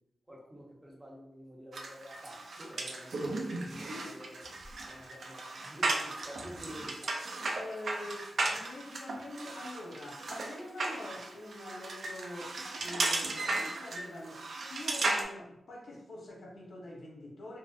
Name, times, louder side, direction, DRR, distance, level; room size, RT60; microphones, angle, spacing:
voice 1, 0.3-3.3 3.6-4.5 4.8-7.1 7.4-7.6, equal, 15° right, -3 dB, 0.6 m, -49 dB
sound 1, 1.7-15.2, right 2 dB, 75° right, 0.3 m, -36 dB
voice 2, 7.5-17.6, left 1 dB, 75° left, -2 dB, 0.5 m, -45 dB
2.6 x 2.0 x 2.4 m, 0.82 s
wide cardioid pair, 80°, 0 cm